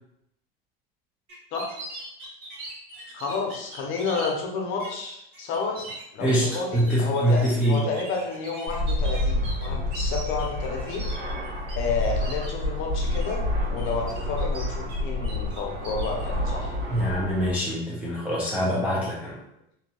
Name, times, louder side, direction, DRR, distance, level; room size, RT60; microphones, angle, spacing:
sound 1, 1.3-4.3 4.8-5.0 5.3-11.7 12.0-12.5 12.9-13.3 13.8-15.0 15.2-16.2, right 2 dB, 60° right, 1.4 m, -41 dB
voice 1, 3.1-5.8 6.1-11.1 11.7-16.7, left 4 dB, 45° left, 1 dB, 0.7 m, -30 dB
voice 2, 6.2-7.8 16.9-19.4, equal, 5° right, -6 dB, 0.3 m, -24 dB
Fixed-wing aircraft airplane, 8.7-17.5, left 1 dB, 80° right, 1.5 m, -28 dB
2.7 x 2.6 x 2.3 m, 0.79 s
supercardioid pair, 130°, 29 cm